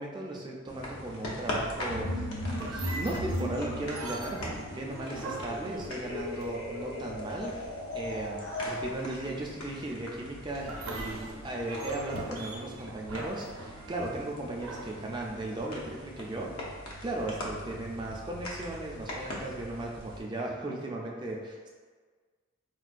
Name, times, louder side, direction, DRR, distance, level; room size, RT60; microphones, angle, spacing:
voice 1, 0.0-2.3 2.6-16.5 17.0-21.7, right 1 dB, 20° right, -2 dB, 0.3 m, -36 dB
sound 1, 0.7-20.2, left 1 dB, 90° left, 0.7 m, -42 dB
sound 2, 1.9-8.8, left 1 dB, 60° left, 0.8 m, -37 dB
sound 3, 2.5-6.8 10.6-15.7, right 2 dB, 75° right, 0.5 m, -41 dB
4.4 x 2.2 x 2.4 m, 1.5 s
head